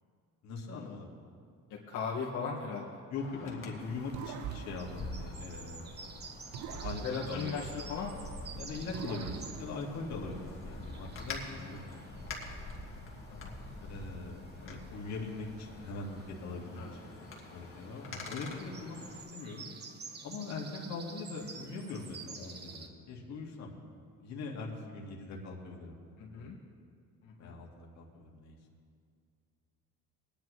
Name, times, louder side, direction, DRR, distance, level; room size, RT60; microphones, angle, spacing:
voice 1, 0.4-1.1 3.1-6.0 6.7-7.6 8.6-12.2 12.5-12.7 13.9-19.7 20.2-23.7 24.2-26.0 26.3-26.5 27.4-28.6, left 3 dB, 60° left, -2 dB, 2.1 m, -42 dB
voice 2, 1.7-3.0 3.4-3.5 7.0-8.3 13.3-13.6 16.8-16.9 26.2-26.6 27.2-27.6, left 5 dB, 80° left, -4 dB, 1.8 m, -38 dB
Wind, 3.2-19.2, left 2 dB, 40° left, 1.9 m, -46 dB
sound 1, 3.8-22.9, right 4 dB, 30° right, 1.0 m, -51 dB
sound 2, 4.1-6.0 6.5-8.4 8.9-10.6, right 9 dB, 65° right, 0.6 m, -45 dB
21.0 x 10.5 x 3.2 m, 2.3 s
cardioid pair, 125°, 31 cm